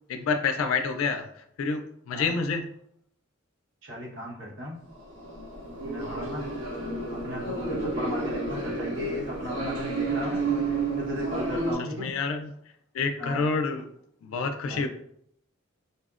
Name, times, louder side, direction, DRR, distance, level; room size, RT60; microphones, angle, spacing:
voice 1, 0.1-2.7 6.0-6.2 11.8-12.5 12.9-13.9 14.2-14.9, left 4 dB, 80° left, 7 dB, 0.3 m, -28 dB
voice 2, 3.8-4.8 5.8-6.5 7.1-12.1 13.2-13.5 14.6-14.9, left 1 dB, 65° right, -4 dB, 1.1 m, -36 dB
sound 1, 4.9-11.7, right 3 dB, 80° right, 1.3 m, -31 dB
4.2 x 2.0 x 2.4 m, 0.71 s
head